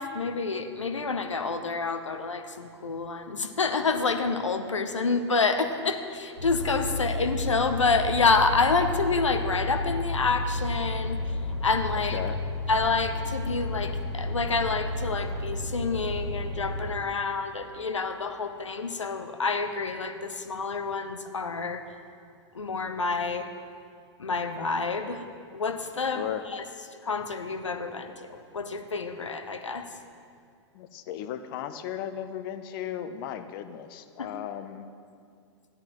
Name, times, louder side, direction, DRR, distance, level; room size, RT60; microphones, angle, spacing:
voice 1, 0.0-11.2 11.6-12.2 12.7-21.8 22.5-23.5 24.2-25.3 25.5-26.6 27.0-29.9 34.2-34.3, left 4 dB, 90° left, 8 dB, 0.8 m, -28 dB
sound 1, 6.4-17.0, left 2 dB, 65° left, 2.0 m, -31 dB
voice 2, 30.7-34.9, left 10 dB, 50° left, 10 dB, 0.7 m, -35 dB
14.0 x 10.5 x 3.0 m, 2.3 s
hypercardioid pair, 105°, 15 cm